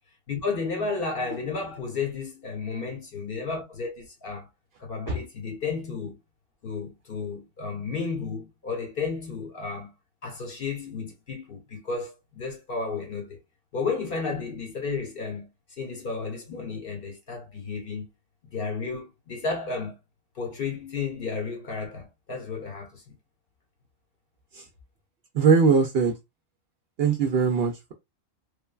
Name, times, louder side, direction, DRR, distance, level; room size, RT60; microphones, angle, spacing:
voice 1, 0.3-4.5 4.8-6.2 6.6-9.9 10.2-13.4 13.7-15.5 15.8-18.1 18.5-19.9 20.4-23.2, left 4 dB, 50° left, 0.9 m, -32 dB
voice 2, 25.4-26.1 27.0-27.9, right 5 dB, 65° right, 0.7 m, -21 dB
3.2 x 2.2 x 2.2 m
omnidirectional pair, 1.3 m